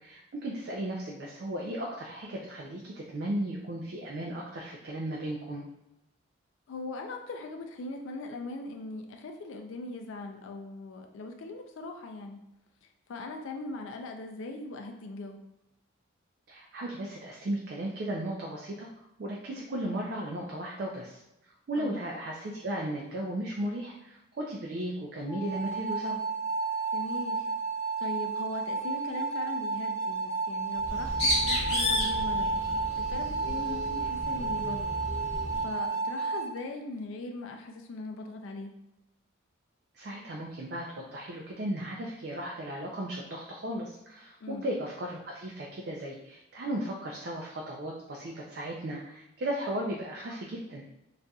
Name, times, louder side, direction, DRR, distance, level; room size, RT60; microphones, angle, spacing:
voice 1, 0.0-5.6 16.5-26.2 39.9-50.8, right 1 dB, 50° right, -2 dB, 0.4 m, -36 dB
voice 2, 6.7-12.4 13.1-15.4 21.8-22.0 26.9-27.5 28.0-32.5 33.1-35.0 35.6-38.7 44.4-44.7, left 2 dB, 70° left, 3 dB, 0.4 m, -40 dB
sound 1, 25.3-36.5, right 4 dB, 15° right, 0.7 m, -32 dB
Bird, 30.8-35.7, left 1 dB, 25° left, 1.1 m, -32 dB
4.0 x 2.5 x 2.3 m, 0.89 s
head